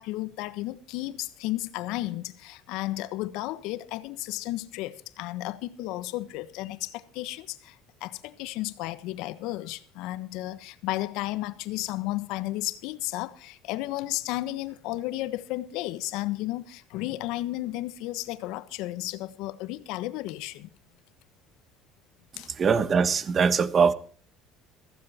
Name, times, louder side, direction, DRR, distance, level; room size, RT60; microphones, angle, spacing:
voice 1, 0.0-20.7 22.4-22.5, left 17 dB, 75° left, 1.2 m, -33 dB
voice 2, 22.6-23.9, right 6 dB, 35° right, 1.4 m, -22 dB
15.5 x 15.0 x 4.4 m
supercardioid pair, 100°, 0 cm